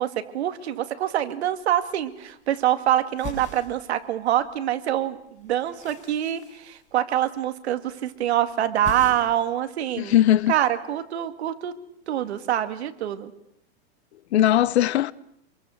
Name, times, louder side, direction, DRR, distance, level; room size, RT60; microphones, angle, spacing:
voice 1, 0.0-10.2 10.5-11.7 12.1-13.3, right 11 dB, 75° right, 2.1 m, -25 dB
sound 1, 1.9-2.7 3.0-4.7 4.9-7.5 7.7-8.2 8.5-9.5 9.8-10.6, left 4 dB, 20° left, 5.9 m, -42 dB
voice 2, 10.0-10.5 14.3-15.1, left 12 dB, 75° left, 1.0 m, -19 dB
27.5 x 23.0 x 6.5 m
supercardioid pair, 150°, 33 cm